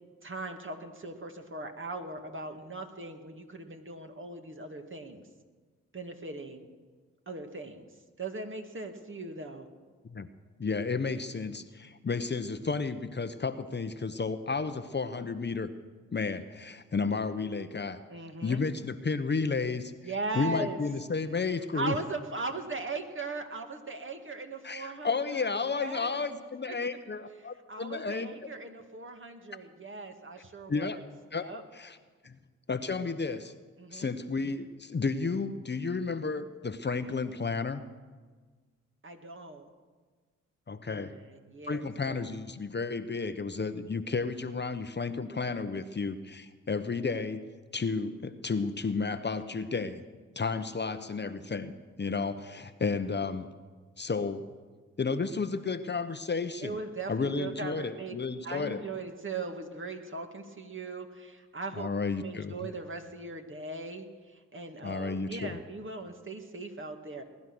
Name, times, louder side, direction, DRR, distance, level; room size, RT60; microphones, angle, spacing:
voice 1, 0.2-5.3 5.9-6.6 7.3-7.9 8.2-9.7 18.1-18.6 20.0-20.8 21.7-26.2 27.7-31.0 31.3-31.6 33.8-34.1 39.0-39.7 40.9-42.4 56.6-58.1 58.4-67.2, right 3 dB, 35° right, 5 dB, 2.2 m, -39 dB
voice 2, 10.6-15.7 16.1-18.0 18.4-22.0 24.6-28.3 30.7-31.0 31.3-32.0 32.2-32.4 32.7-33.5 33.9-37.8 40.7-41.1 41.6-50.0 50.4-51.7 52.0-53.5 54.0-54.4 55.0-56.8 57.1-58.8 61.7-62.6 64.8-65.6, left 4 dB, 30° left, 10 dB, 1.0 m, -32 dB
20.0 x 11.0 x 6.3 m, 1.4 s
supercardioid pair, 45°, 33 cm